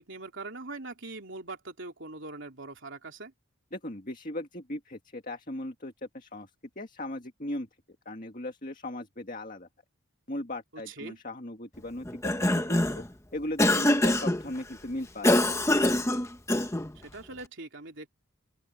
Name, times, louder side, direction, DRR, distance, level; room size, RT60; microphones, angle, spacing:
voice 1, 0.0-3.3 10.7-11.2 17.0-18.1, right 3 dB, 55° right, 3.5 m, -42 dB
voice 2, 3.7-6.5 6.8-7.7 8.1-9.7 10.3-13.0 13.3-15.7, left 1 dB, 40° left, 2.0 m, -38 dB
Cough, 12.1-13.1 13.6-14.4 15.2-16.9, left 1 dB, 15° left, 1.0 m, -24 dB
open air
head